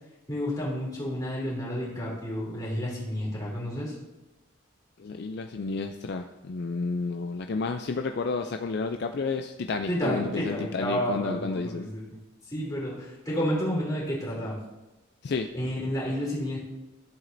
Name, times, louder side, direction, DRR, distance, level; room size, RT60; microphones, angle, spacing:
voice 1, 0.3-3.9 9.9-12.0 12.5-14.6 15.5-16.6, equal, 20° left, -6 dB, 2.9 m, -30 dB
voice 2, 5.0-11.9 15.2-15.5, left 4 dB, 55° left, 6 dB, 0.4 m, -31 dB
13.5 x 7.3 x 2.6 m, 1.0 s
head